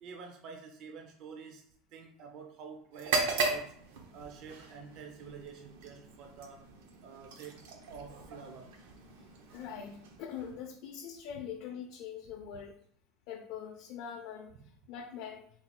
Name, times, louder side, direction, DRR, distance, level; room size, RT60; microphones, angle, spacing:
voice 1, 0.0-1.6 1.9-3.7 4.1-6.7 7.0-7.6 7.9-8.7 11.3-11.4, right 5 dB, 40° right, 3 dB, 0.4 m, -48 dB
sound 1, 2.9-10.8, right 3 dB, 85° right, 0.7 m, -38 dB
voice 2, 9.5-12.8 13.3-14.5 14.9-15.4, left 8 dB, 50° left, 1 dB, 0.4 m, -43 dB
3.9 x 2.3 x 4.4 m, 0.64 s
cardioid pair, 175°, 0 cm